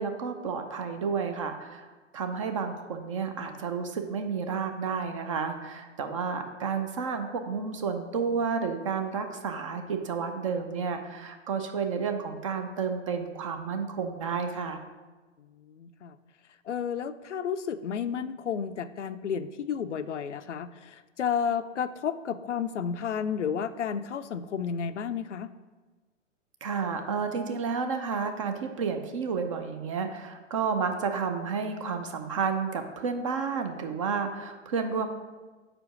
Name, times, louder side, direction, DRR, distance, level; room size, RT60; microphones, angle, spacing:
voice 1, 0.0-1.9 2.1-14.8 26.6-35.1, right 5 dB, 25° right, 6 dB, 0.4 m, -31 dB
voice 2, 15.6-16.2 16.7-25.5, left 7 dB, 70° left, 12 dB, 0.5 m, -32 dB
5.0 x 4.7 x 6.1 m, 1.3 s
figure-of-eight pair, 110°, 37 cm